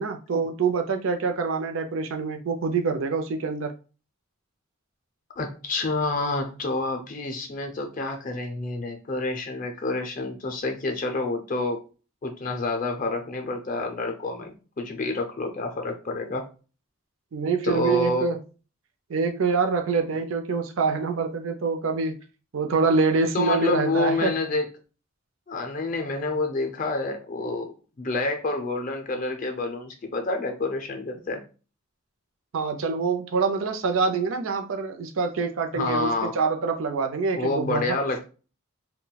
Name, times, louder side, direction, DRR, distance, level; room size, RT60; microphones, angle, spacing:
voice 1, 0.0-3.7 17.3-18.4 19.1-22.2 22.5-24.3 32.5-38.0, right 4 dB, 75° right, 0.5 m, -25 dB
voice 2, 5.4-11.8 12.2-16.5 17.6-18.4 23.3-24.7 25.5-31.4 35.7-36.3 37.3-38.2, left 2 dB, 40° left, 0.5 m, -28 dB
2.2 x 2.2 x 3.9 m
head